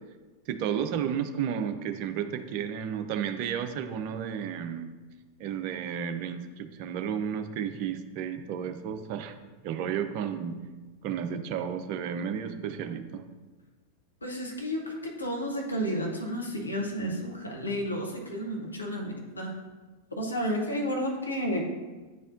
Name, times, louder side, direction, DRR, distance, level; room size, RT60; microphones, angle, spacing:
voice 1, 0.5-4.9 5.4-9.4 9.6-10.6 11.0-13.2, right 8 dB, 45° right, 8 dB, 0.4 m, -32 dB
voice 2, 14.2-19.5 20.2-21.6, equal, 80° left, 0 dB, 1.0 m, -31 dB
9.0 x 4.1 x 2.6 m, 1.3 s
figure-of-eight pair, 90°, 0 cm